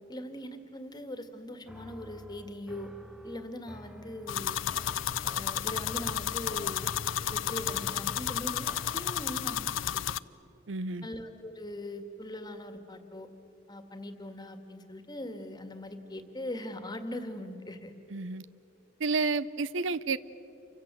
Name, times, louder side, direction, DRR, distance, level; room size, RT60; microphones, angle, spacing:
voice 1, 0.1-2.9 3.2-4.6 5.2-6.9 7.3-9.7 10.1-10.2 11.0-13.3 13.7-17.9, left 1 dB, 20° left, 7 dB, 2.0 m, -41 dB
sound 1, 1.7-9.7, equal, 5° right, 0.7 m, -50 dB
sound 2, 4.3-10.2, left 10 dB, 90° left, 0.5 m, -32 dB
voice 2, 10.7-11.1 18.1-18.5 19.0-20.2, right 4 dB, 75° right, 17 dB, 0.6 m, -30 dB
29.5 x 25.0 x 7.6 m, 2.9 s
head